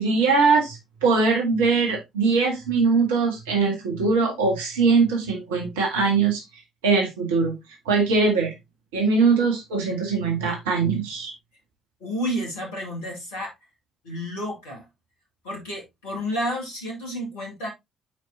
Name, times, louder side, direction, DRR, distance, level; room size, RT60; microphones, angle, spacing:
voice 1, 0.0-6.4 6.8-7.5 7.8-8.5 8.9-11.3, right 4 dB, 70° right, 1.7 m, -21 dB
voice 2, 12.0-13.5 14.0-14.8 15.4-17.7, equal, 70° left, 2.1 m, -30 dB
9.3 x 4.7 x 2.7 m
figure-of-eight pair, 45°, 0 cm